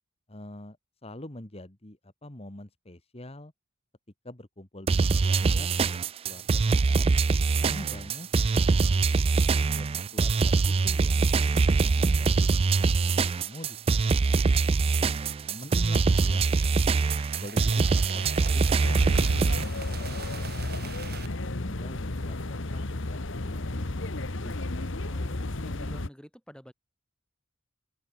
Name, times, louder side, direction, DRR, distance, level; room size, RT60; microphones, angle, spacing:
voice 1, 0.3-0.8 1.0-3.5 4.2-7.1 7.6-9.0 9.5-11.2 11.8-14.9 15.5-16.8 17.4-19.2 19.5-20.9 21.4-24.8, left 1 dB, 30° left, 1.9 m, -45 dB
sound 1, 4.9-19.6, right 4 dB, 30° right, 0.3 m, -23 dB
sound 2, 15.7-21.3, right 6 dB, 50° right, 4.6 m, -43 dB
sound 3, 18.8-26.1, left 2 dB, 60° left, 1.5 m, -33 dB
voice 2, 25.0-26.7, equal, 5° left, 3.9 m, -48 dB
head